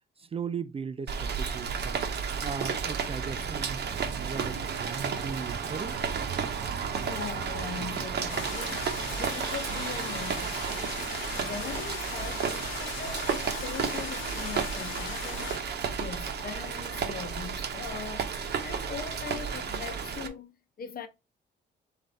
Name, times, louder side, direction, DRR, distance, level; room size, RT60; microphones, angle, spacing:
voice 1, 0.2-2.1 2.4-3.8 4.1-6.0, right 6 dB, 30° right, 0.4 m, -37 dB
Rain, 1.1-20.3, right 6 dB, 55° right, 1.0 m, -32 dB
voice 2, 7.0-10.9 11.4-20.5 20.8-21.1, left 6 dB, 50° left, 0.9 m, -41 dB
sound 1, 8.3-15.6, left 5 dB, 80° left, 1.3 m, -39 dB
3.7 x 3.4 x 4.1 m
cardioid pair, 90°, 20 cm